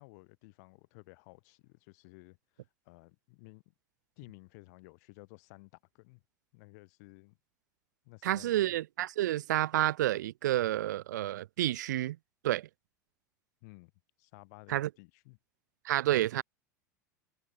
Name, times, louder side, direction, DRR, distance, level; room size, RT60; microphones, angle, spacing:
voice 1, 0.0-3.7 4.2-6.2 6.5-7.4 8.0-8.8 13.6-13.9 14.2-15.4, left 29 dB, 65° left, 7.5 m, -55 dB
voice 2, 8.2-12.2 12.4-12.7 14.7-14.9 15.8-16.4, right 14 dB, 80° right, 0.6 m, -29 dB
hypercardioid pair, 85°, 10 cm